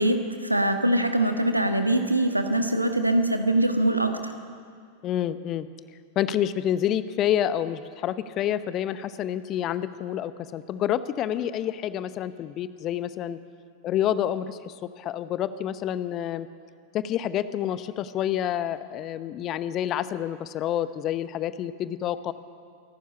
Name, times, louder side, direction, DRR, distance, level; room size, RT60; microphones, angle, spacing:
voice 1, 0.0-4.3, right 1 dB, 85° right, 7 dB, 1.5 m, -23 dB
voice 2, 5.0-5.7 6.2-13.4 13.8-16.5 16.9-22.3, left 11 dB, 35° left, 14 dB, 0.9 m, -28 dB
27.0 x 12.0 x 8.4 m, 2.2 s
figure-of-eight pair, 90°, 0 cm